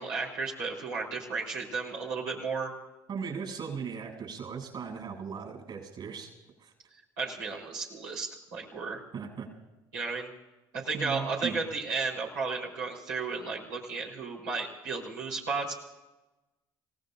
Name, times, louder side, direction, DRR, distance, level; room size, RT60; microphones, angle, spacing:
voice 1, 0.0-2.7 7.2-9.0 9.9-10.3 10.7-15.7, right 4 dB, 85° right, -4 dB, 4.3 m, -33 dB
voice 2, 3.1-6.3 6.6-6.7 9.1-9.5 10.9-11.6, right 6 dB, 55° right, 2 dB, 7.6 m, -37 dB
30.0 x 17.5 x 2.7 m, 1.1 s
hypercardioid pair, 65°, 10 cm